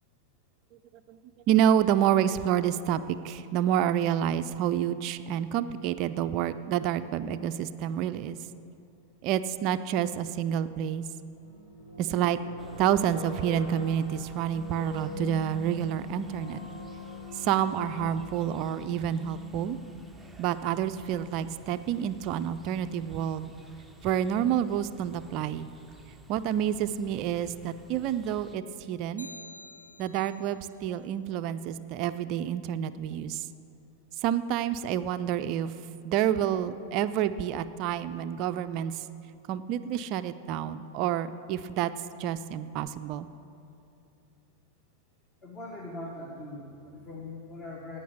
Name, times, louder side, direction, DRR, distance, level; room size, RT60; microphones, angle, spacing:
voice 1, 1.5-8.4 9.2-11.0 12.0-12.4 12.8-16.6 17.3-19.8 20.4-23.5 24.0-25.7 26.3-29.3 30.0-33.5 34.2-35.7 36.0-39.1 39.5-41.9 42.2-43.3, right 10 dB, 40° right, 11 dB, 0.4 m, -28 dB
sound 1, 11.4-20.2, left 4 dB, 65° left, 4.0 m, -42 dB
sound 2, 12.6-28.6, right 2 dB, ahead, 0.8 m, -53 dB
sound 3, 29.2-30.6, left 1 dB, 85° left, 0.4 m, -48 dB
voice 2, 45.4-48.0, left 2 dB, 25° left, -1 dB, 1.7 m, -41 dB
17.5 x 5.9 x 8.2 m, 2.6 s
figure-of-eight pair, 90°, 0 cm